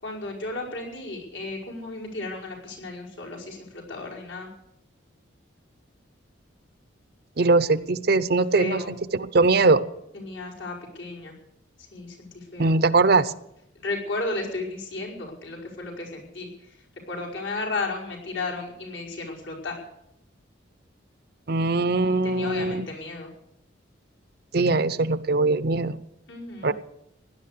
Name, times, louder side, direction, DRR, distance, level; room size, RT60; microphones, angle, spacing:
voice 1, 0.0-4.5 8.5-8.9 10.1-11.3 11.8-12.8 13.8-19.8 22.1-23.3 26.3-26.7, left 2 dB, 70° left, -2 dB, 5.3 m, -34 dB
voice 2, 7.4-8.8 9.3-9.8 12.6-13.3 21.5-22.9 24.5-26.0 26.6-26.7, right 3 dB, 50° right, 15 dB, 0.7 m, -21 dB
17.5 x 11.5 x 6.7 m, 0.80 s
head